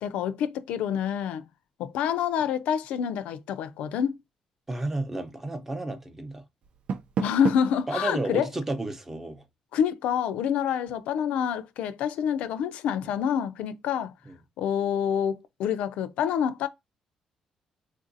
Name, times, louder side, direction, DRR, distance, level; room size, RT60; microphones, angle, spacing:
voice 1, 0.0-1.4 1.8-4.2 7.2-8.5 9.7-14.1 14.6-16.7, left 8 dB, 85° left, 0.4 m, -27 dB
voice 2, 4.7-6.4 7.9-9.4 14.3-14.4, right 2 dB, 15° right, 0.7 m, -32 dB
Door, 6.6-7.8, right 6 dB, 60° right, 0.4 m, -31 dB
3.7 x 2.5 x 2.6 m
cardioid pair, 115°, 2 cm